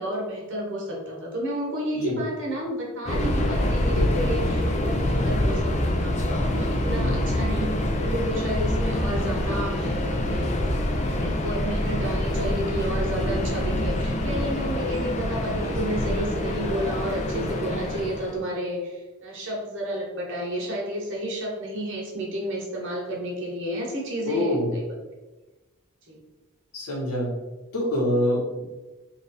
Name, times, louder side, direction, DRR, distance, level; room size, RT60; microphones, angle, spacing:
voice 1, 0.0-6.2 6.5-7.6 8.0-10.5 11.2-24.8 26.1-26.2, equal, 55° right, -2 dB, 1.2 m, -31 dB
Subway metro underground, 3.1-18.4, left 1 dB, 30° left, 0.4 m, -25 dB
voice 2, 6.9-7.2 24.3-24.7 26.7-27.3 27.7-28.7, equal, 90° left, -1 dB, 1.2 m, -26 dB
3.3 x 2.5 x 4.1 m, 1.2 s
head